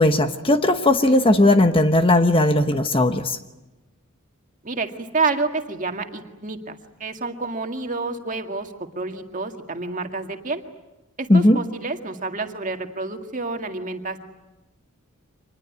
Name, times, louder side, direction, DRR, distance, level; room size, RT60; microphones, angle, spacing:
voice 1, 0.0-3.4 11.3-11.6, left 1 dB, 25° left, 8 dB, 1.1 m, -17 dB
voice 2, 4.6-10.6 11.2-14.2, right 3 dB, 35° right, 5 dB, 2.0 m, -29 dB
26.0 x 20.5 x 9.5 m, 1.0 s
head